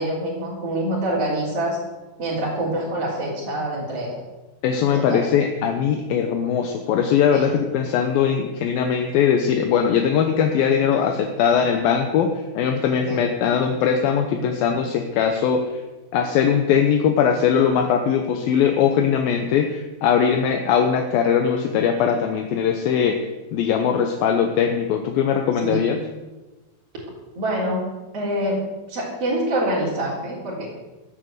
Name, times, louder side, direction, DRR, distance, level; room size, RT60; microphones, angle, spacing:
voice 1, 0.0-1.8 2.2-4.2 4.9-5.2 7.3-7.6 12.9-13.2 25.6-25.9 27.4-27.8 28.1-28.6 28.9-30.7, right 1 dB, 40° right, -7 dB, 4.6 m, -25 dB
voice 2, 4.6-15.6 16.1-23.2 23.5-26.0, left 7 dB, 75° left, 4 dB, 2.7 m, -20 dB
15.0 x 9.6 x 7.9 m, 1.2 s
omnidirectional pair, 4.3 m